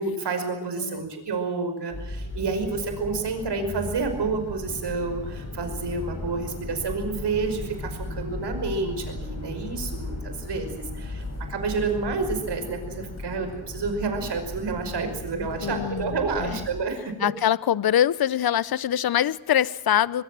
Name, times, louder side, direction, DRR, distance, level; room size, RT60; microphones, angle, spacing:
voice 1, 0.0-11.2 11.5-17.1, right 4 dB, 70° right, 5.5 m, -29 dB
sound 1, 1.9-16.8, left 2 dB, 35° left, 8.0 m, -36 dB
voice 2, 15.6-16.6 17.2-20.2, left 10 dB, 60° left, 0.8 m, -24 dB
22.5 x 22.5 x 7.6 m
cardioid pair, 65°, 42 cm